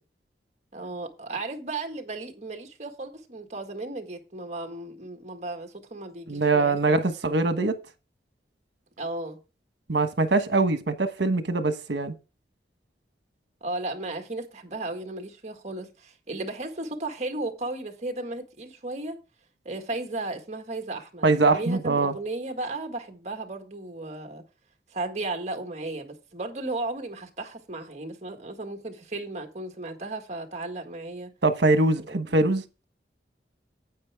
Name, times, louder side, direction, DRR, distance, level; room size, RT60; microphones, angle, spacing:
voice 1, 0.7-7.0 9.0-9.4 13.6-19.2 19.7-24.4 24.9-31.3 32.0-32.2, right 2 dB, 40° right, 1.7 m, -35 dB
voice 2, 6.3-7.7 9.9-12.1 21.2-22.1 31.4-32.6, right 3 dB, 80° right, 1.2 m, -23 dB
9.6 x 8.3 x 3.5 m
head